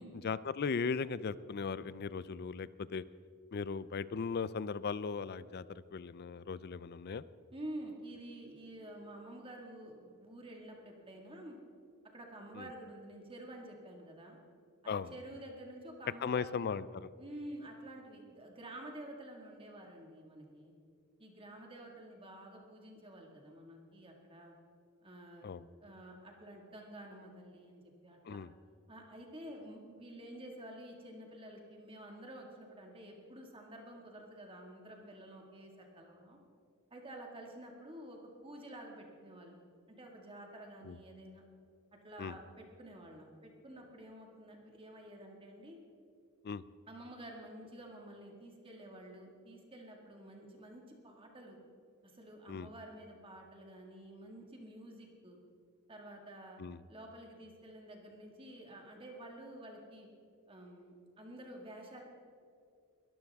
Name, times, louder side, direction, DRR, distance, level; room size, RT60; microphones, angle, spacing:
voice 1, 0.2-3.0 3.5-7.3 12.6-12.7 14.9-15.1 16.2-17.1 25.4-25.6 28.2-28.5 40.8-41.0 42.2-42.3 46.4-46.6 52.5-52.7 56.6-56.8, left 5 dB, 45° left, 17 dB, 0.4 m, -37 dB
voice 2, 7.5-11.6 12.1-14.4 14.8-16.8 17.2-20.7 21.2-24.5 25.0-25.5 25.8-28.4 28.9-36.4 36.9-41.4 42.0-45.8 46.9-51.6 52.0-55.4 55.9-56.6 56.9-60.1 60.5-62.0, right 1 dB, 25° right, 1 dB, 1.9 m, -50 dB
22.0 x 13.5 x 3.6 m, 2.4 s
head